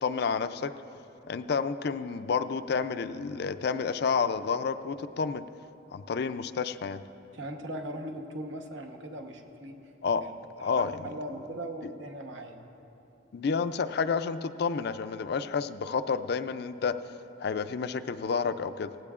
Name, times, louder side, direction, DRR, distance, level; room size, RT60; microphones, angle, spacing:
voice 1, 0.0-0.7 1.3-5.5 5.9-7.0 10.0-10.2 10.6-11.0 13.3-17.0 17.4-18.9, left 5 dB, 55° left, 11 dB, 0.4 m, -30 dB
voice 2, 7.3-9.8 10.2-10.3 10.6-12.6, right 1 dB, 70° right, 4 dB, 1.0 m, -39 dB
18.0 x 15.5 x 2.4 m, 2.9 s
head